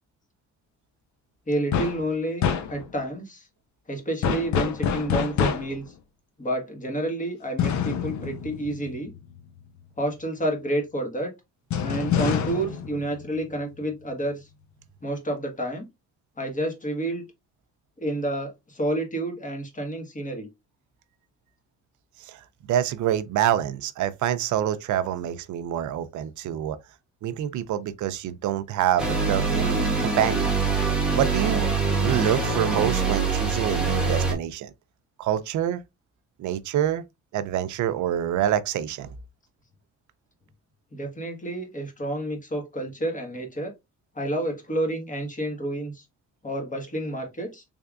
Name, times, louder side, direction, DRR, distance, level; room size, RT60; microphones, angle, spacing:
voice 1, 1.5-2.4 2.7-3.5 3.9-5.8 6.4-9.1 10.0-11.3 11.8-14.5 15.0-15.9 16.4-17.2 18.0-20.5 40.9-43.7 44.1-46.0 46.4-47.6, right 1 dB, 25° left, 1.5 m, -29 dB
sound 1, 1.7-2.1 2.4-3.0 4.2-5.9 7.6-9.4 11.7-13.8, left 7 dB, 70° left, 0.7 m, -27 dB
voice 2, 22.2-26.8 27.2-30.5 31.1-31.7 32.0-34.7 35.2-35.8 36.4-37.0 37.3-39.1, right 11 dB, 75° right, 0.5 m, -26 dB
sound 2, 29.0-34.3, right 4 dB, 5° right, 1.3 m, -24 dB
3.5 x 3.4 x 2.4 m
cardioid pair, 90°, 30 cm